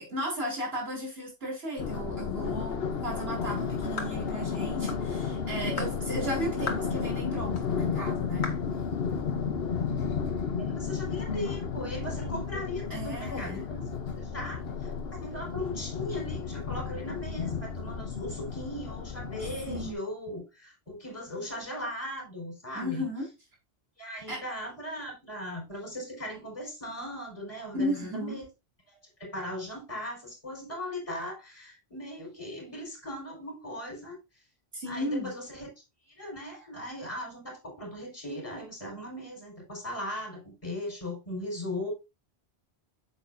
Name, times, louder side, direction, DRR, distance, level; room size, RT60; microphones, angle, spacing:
voice 1, 0.1-8.5 12.9-13.6 19.7-20.0 22.7-23.3 24.3-24.4 27.7-28.4 34.7-35.3, equal, 65° right, 4.3 m, -35 dB
sound 1, 1.8-19.9, left 6 dB, 65° left, 1.1 m, -33 dB
sound 2, 4.0-4.2 4.9-5.1 5.8-6.0 6.7-6.9 7.6-7.7 8.4-8.7, left 3 dB, 85° left, 1.7 m, -36 dB
voice 2, 10.6-23.1 24.0-28.4 28.9-34.2 34.9-35.7 36.1-41.9, left 1 dB, 30° left, 4.7 m, -38 dB
8.4 x 7.3 x 2.6 m
omnidirectional pair, 1.1 m